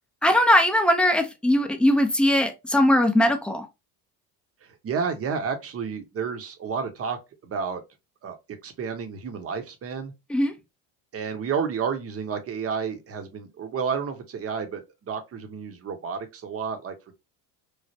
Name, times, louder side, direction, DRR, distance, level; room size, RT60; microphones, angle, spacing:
voice 1, 0.2-3.7 10.3-10.5, left 1 dB, ahead, 0.4 m, -20 dB
voice 2, 4.6-7.8 8.2-8.4 8.6-10.1 11.1-17.1, right 6 dB, 30° right, 0.8 m, -31 dB
3.2 x 2.0 x 2.6 m
supercardioid pair, 90°, 45 cm